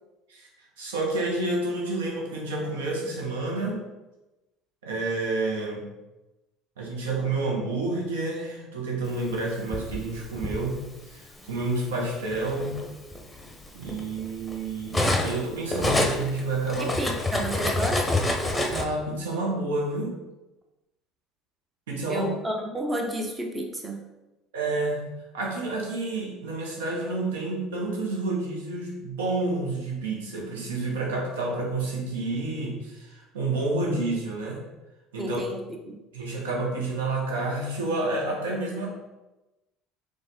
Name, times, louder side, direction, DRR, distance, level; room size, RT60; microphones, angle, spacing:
voice 1, 0.8-3.8 4.8-5.8 6.8-12.8 13.7-17.0 18.7-20.2 21.9-22.3 24.5-34.6 35.1-35.4 36.1-38.9, right 2 dB, 85° right, -1 dB, 1.0 m, -29 dB
Cutlery silverware, 9.3-10.6 11.6-11.7 12.2-15.4 15.7-18.8, left 1 dB, 10° left, 0.9 m, -27 dB
voice 2, 16.8-18.2 22.1-24.0 35.2-36.0, right 1 dB, 20° right, 2 dB, 0.8 m, -31 dB
3.9 x 3.5 x 3.7 m, 1.0 s
hypercardioid pair, 75°, 0 cm